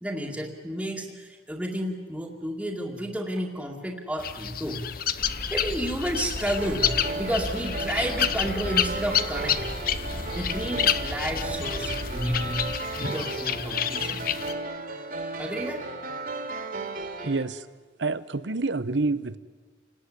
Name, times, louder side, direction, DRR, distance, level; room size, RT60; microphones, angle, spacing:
voice 1, 0.0-4.8 5.5-9.7 10.3-12.7 13.0-14.2 15.4-15.9, equal, 5° right, -2 dB, 2.2 m, -31 dB
sound 1, 4.2-14.5, left 9 dB, 50° left, 0.8 m, -29 dB
sound 2, 5.2-12.8, equal, 35° left, 2.2 m, -37 dB
sound 3, 6.4-17.4, right 3 dB, 50° right, 2.6 m, -35 dB
voice 2, 17.2-17.6 18.0-19.4, right 3 dB, 75° right, 15 dB, 1.0 m, -27 dB
29.0 x 18.5 x 9.9 m, 1.5 s
head